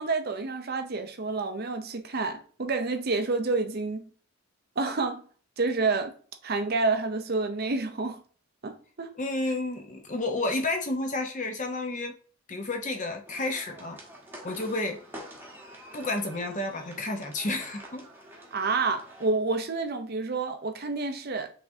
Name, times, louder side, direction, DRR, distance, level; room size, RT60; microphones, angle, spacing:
voice 1, 0.0-4.0 4.8-5.2 5.6-6.1 6.4-8.2 8.6-9.1 18.5-21.5, right 3 dB, 45° right, 0.6 m, -29 dB
voice 2, 9.2-12.1 12.5-14.0 14.4-15.0 15.9-18.1, left 2 dB, 35° left, 0.8 m, -31 dB
sound 1, 13.3-19.3, equal, 10° right, 1.0 m, -47 dB
5.4 x 3.5 x 2.7 m
head